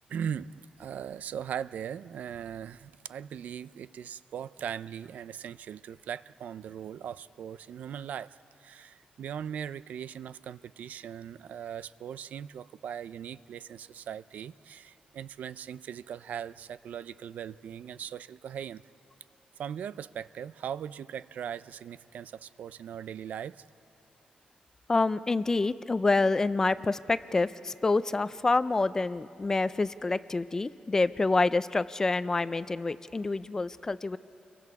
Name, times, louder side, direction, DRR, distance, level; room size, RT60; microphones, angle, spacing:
voice 1, 0.1-0.5 0.8-18.8 19.6-23.7, right 8 dB, 75° right, 16 dB, 0.4 m, -39 dB
voice 2, 24.9-34.2, left 3 dB, 20° left, 14 dB, 0.4 m, -27 dB
30.0 x 23.0 x 4.8 m, 3.0 s
wide cardioid pair, 165°, 3 cm